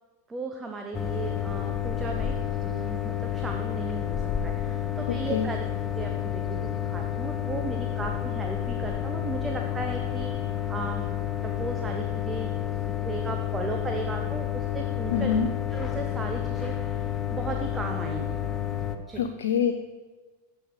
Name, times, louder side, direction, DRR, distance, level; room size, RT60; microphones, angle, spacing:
voice 1, 0.3-2.4 2.6-5.6 5.9-10.3 10.7-11.0 11.4-12.5 13.0-15.3 15.7-18.4 19.1-19.3, right 3 dB, 15° right, 4 dB, 0.9 m, -36 dB
sound 1, 0.9-19.0, left 10 dB, 20° left, 0.9 m, -30 dB
voice 2, 5.1-5.5 15.1-15.5 19.2-19.7, left 7 dB, 60° left, 6 dB, 0.7 m, -25 dB
16.0 x 6.3 x 5.2 m, 1.3 s
figure-of-eight pair, 90°, 0 cm